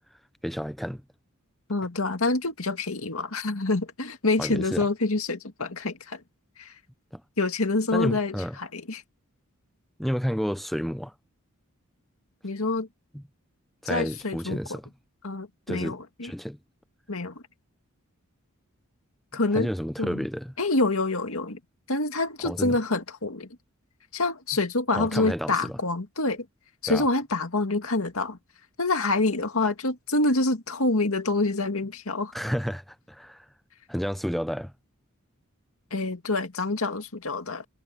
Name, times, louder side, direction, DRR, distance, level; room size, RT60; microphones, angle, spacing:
voice 1, 0.4-1.0 4.4-4.9 7.1-7.2 7.9-8.6 10.0-11.1 13.1-13.2 13.8-14.9 15.7-16.0 16.2-16.6 19.5-20.5 22.4-22.8 24.9-25.8 26.9-27.1 32.3-33.5 33.9-34.7, equal, ahead, 0.5 m, -31 dB
voice 2, 1.7-6.2 6.6-6.7 7.4-9.0 12.4-12.9 13.9-14.8 15.2-16.3 17.1-17.4 19.3-19.7 20.0-20.3 20.6-21.6 21.9-23.5 24.1-26.5 26.8-28.4 28.8-32.3 35.9-37.6, left 2 dB, 70° left, 2.2 m, -27 dB
head